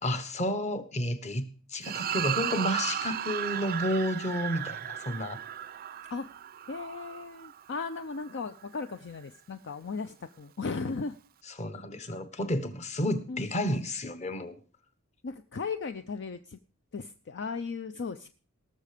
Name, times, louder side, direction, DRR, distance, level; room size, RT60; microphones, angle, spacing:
voice 1, 0.0-5.4 11.6-14.6, equal, 30° left, 1.2 m, -31 dB
sound 1, 1.8-8.4, right 10 dB, 40° right, 0.5 m, -35 dB
voice 2, 6.7-11.2 13.3-13.5 15.2-16.6 16.9-18.3, left 4 dB, 55° left, 0.6 m, -36 dB
18.5 x 6.6 x 5.1 m
head